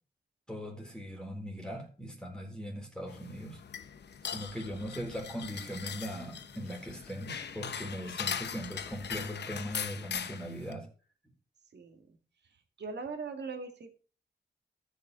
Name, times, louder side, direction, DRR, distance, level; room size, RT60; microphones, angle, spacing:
voice 1, 0.5-3.6 4.2-10.9, equal, 5° left, 0 dB, 3.9 m, -40 dB
sound 1, 3.1-10.7, left 7 dB, 85° left, 0.8 m, -40 dB
voice 2, 11.7-12.2 12.8-13.9, right 4 dB, 85° right, 5 dB, 2.0 m, -40 dB
14.0 x 6.6 x 4.0 m, 0.36 s
cardioid pair, 75°, 17 cm